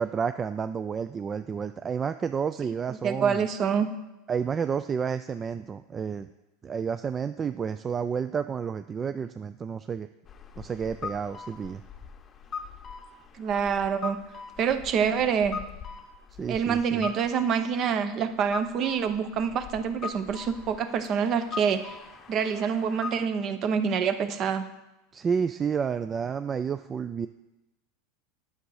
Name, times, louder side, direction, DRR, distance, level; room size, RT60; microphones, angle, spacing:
voice 1, 0.0-3.4 4.3-6.3 6.6-10.1 10.6-11.8 16.4-17.1 25.1-27.3, right 6 dB, 25° right, 11 dB, 0.3 m, -30 dB
voice 2, 3.0-3.9 13.4-14.2 14.6-15.6 16.5-22.0 22.3-24.7, right 7 dB, 45° right, 10 dB, 0.8 m, -26 dB
sound 1, 10.3-23.3, left 6 dB, 30° left, 0.7 m, -41 dB
8.8 x 6.9 x 4.8 m, 0.98 s
hypercardioid pair, 100°, 0 cm